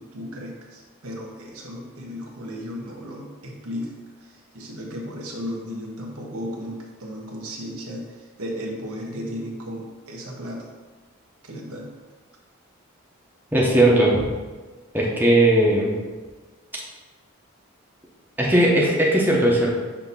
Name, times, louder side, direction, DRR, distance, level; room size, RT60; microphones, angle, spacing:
voice 1, 0.0-3.9 4.2-10.7 11.4-11.9, equal, 85° right, -1 dB, 1.2 m, -35 dB
voice 2, 13.5-14.3 14.9-16.0 18.4-19.7, right 1 dB, 10° right, -4 dB, 0.9 m, -18 dB
6.0 x 2.9 x 5.6 m, 1.3 s
head